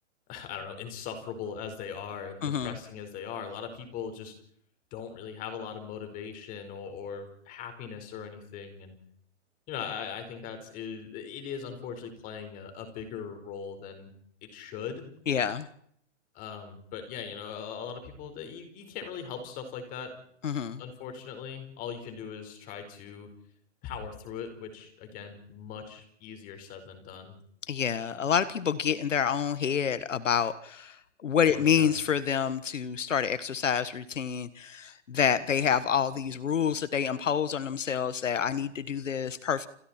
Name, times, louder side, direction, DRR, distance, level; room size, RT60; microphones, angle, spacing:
voice 1, 0.3-4.3 4.9-9.0 9.7-14.1 14.5-15.0 16.3-20.1 20.8-23.3 23.8-27.3 31.5-31.9, left 7 dB, 25° left, 7 dB, 4.7 m, -40 dB
voice 2, 2.4-2.7 15.3-15.7 20.4-20.8 27.7-31.0 31.2-39.7, left 7 dB, 85° left, 14 dB, 1.6 m, -28 dB
29.5 x 28.0 x 4.4 m, 0.68 s
hypercardioid pair, 150°, 37 cm